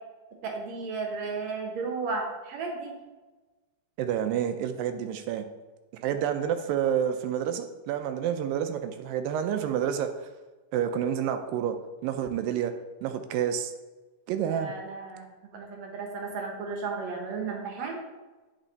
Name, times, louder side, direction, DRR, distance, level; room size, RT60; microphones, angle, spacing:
voice 1, 0.4-3.0 14.5-18.0, right 4 dB, 65° right, 2 dB, 2.1 m, -34 dB
voice 2, 4.0-5.4 6.0-10.3 10.7-11.7 12.0-12.7 13.0-13.7 14.3-14.7, right 9 dB, 85° right, 8 dB, 2.3 m, -29 dB
9.0 x 5.3 x 4.0 m, 1.2 s
omnidirectional pair, 4.0 m